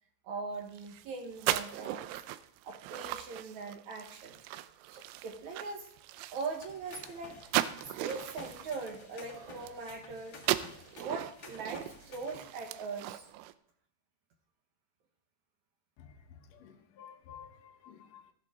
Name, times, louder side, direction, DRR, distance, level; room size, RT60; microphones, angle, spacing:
voice 1, 0.2-2.1 2.6-4.5 4.9-5.9 6.3-7.4 8.0-10.4 10.9-13.3, right 4 dB, 70° right, 3 dB, 1.8 m, -41 dB
sound 1, 0.7-10.0 10.3-13.5, right 15 dB, 85° right, 2.8 m, -38 dB
sound 2, 6.6-12.5, left 3 dB, 70° left, 0.9 m, -52 dB
voice 2, 16.0-18.3, left 8 dB, 85° left, 4 dB, 1.4 m, -53 dB
14.0 x 10.5 x 3.7 m, 0.66 s
omnidirectional pair, 4.9 m